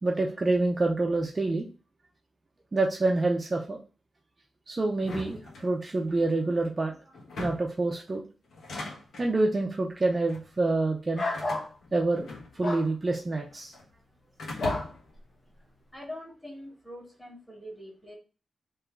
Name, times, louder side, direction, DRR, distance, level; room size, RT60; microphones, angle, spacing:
voice 1, 0.0-1.7 2.7-3.8 4.7-6.9 7.4-8.2 9.2-11.2 11.9-12.3 12.6-13.7, right 2 dB, 30° right, 1 dB, 0.6 m, -27 dB
sound 1, 5.0-6.1 7.1-7.8 8.5-9.3 10.1-10.5 11.3-12.9 13.1-13.9 14.4-15.2, left 2 dB, 85° left, 1.4 m, -40 dB
sound 2, 11.1-11.7 12.6-12.9 14.6-14.9, left 2 dB, 40° left, 0.9 m, -30 dB
voice 2, 15.9-18.2, left 1 dB, 10° left, -2 dB, 2.1 m, -43 dB
3.5 x 3.0 x 4.5 m, 0.35 s
wide cardioid pair, 130°, 0 cm